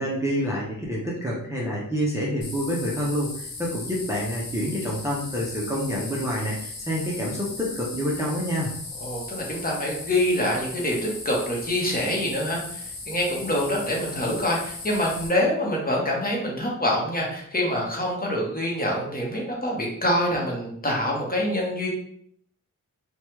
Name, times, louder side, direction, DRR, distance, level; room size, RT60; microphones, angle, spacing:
voice 1, 0.0-8.7, equal, 10° right, -5 dB, 0.6 m, -27 dB
sound 1, 2.4-15.3, left 3 dB, 90° left, 0.9 m, -37 dB
voice 2, 9.0-21.9, left 1 dB, 25° left, -2 dB, 0.9 m, -26 dB
3.1 x 2.2 x 2.9 m, 0.67 s
wide cardioid pair, 90°, 34 cm